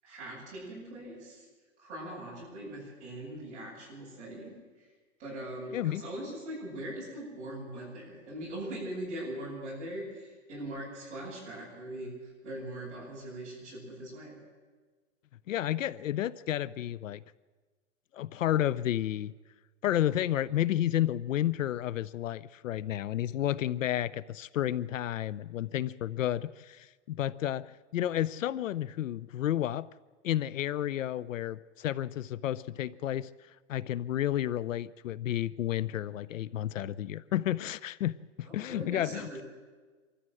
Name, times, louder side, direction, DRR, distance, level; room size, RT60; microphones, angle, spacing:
voice 1, 0.0-1.5 1.8-4.9 5.2-14.4 38.4-39.4, right 1 dB, 20° right, -6 dB, 8.0 m, -41 dB
voice 2, 15.5-17.2 18.1-19.3 19.8-29.9 30.2-33.3 33.7-39.4, left 12 dB, 75° left, 19 dB, 0.7 m, -31 dB
24.5 x 14.0 x 7.7 m, 1.4 s
hypercardioid pair, 175°, 39 cm